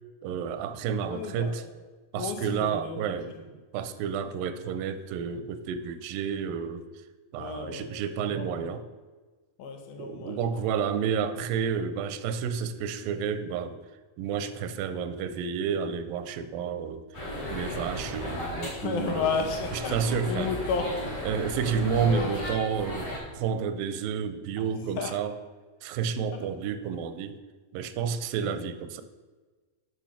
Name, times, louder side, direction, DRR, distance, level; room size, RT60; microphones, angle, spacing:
voice 1, 0.2-1.6 2.1-3.3 3.7-6.8 7.3-8.8 10.0-13.8 14.2-17.1 17.5-19.3 19.9-20.5 21.3-25.3 25.8-27.4 27.7-29.0, right 7 dB, 80° right, 11 dB, 2.4 m, -30 dB
voice 2, 1.1-1.6 2.1-3.4 7.4-7.9 8.2-8.7 9.6-10.7 17.6-17.8 18.7-21.1 21.5-22.4 24.6-24.7 25.0-25.2 26.3-26.4 28.4-28.6, left 5 dB, 80° left, 4 dB, 3.0 m, -33 dB
sound 1, 17.1-23.2, left 1 dB, 30° left, 3.5 m, -35 dB
11.5 x 6.5 x 5.9 m, 1.3 s
omnidirectional pair, 4.2 m